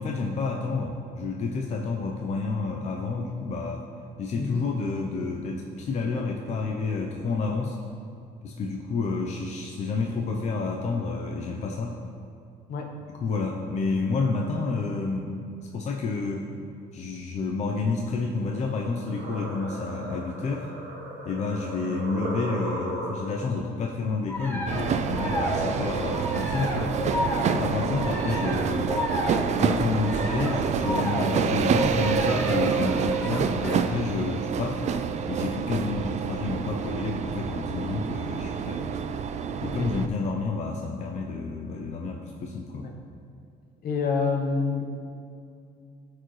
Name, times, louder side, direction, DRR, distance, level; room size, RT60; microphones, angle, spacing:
voice 1, 0.0-3.8 4.2-7.8 8.4-12.0 13.2-15.3 15.7-16.5 16.9-20.7 21.2-27.0 27.5-29.0 29.5-34.9 35.3-38.8 39.6-42.9, left 4 dB, 45° left, 0 dB, 0.6 m, -29 dB
sound 1, 18.4-23.5, right 1 dB, 90° right, 1.7 m, -36 dB
sound 2, 24.3-33.9, left 1 dB, 10° left, 1.0 m, -33 dB
sound 3, 24.7-40.1, right 6 dB, 45° right, 0.4 m, -27 dB
voice 2, 43.8-44.9, left 4 dB, 60° left, 3 dB, 0.9 m, -28 dB
12.5 x 4.7 x 3.1 m, 2.4 s
cardioid pair, 110°, 17 cm